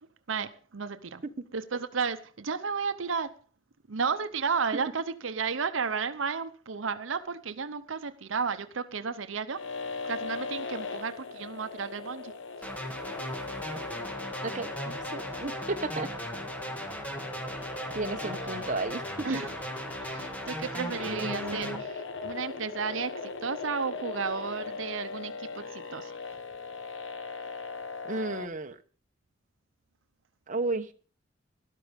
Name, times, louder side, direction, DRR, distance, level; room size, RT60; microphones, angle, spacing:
voice 1, 0.3-1.2 1.5-3.4 3.9-9.7 10.0-12.3 13.4-13.6 19.2-19.5 20.0-26.1, right 5 dB, 80° right, 0.8 m, -33 dB
sound 1, 9.5-28.5, left 4 dB, 70° left, 1.2 m, -39 dB
sound 2, 12.6-21.8, equal, 10° left, 1.6 m, -37 dB
voice 2, 14.4-16.1 17.9-19.5 21.0-21.8 28.0-28.8 30.5-30.9, right 3 dB, 40° right, 1.0 m, -33 dB
13.0 x 12.0 x 5.2 m
head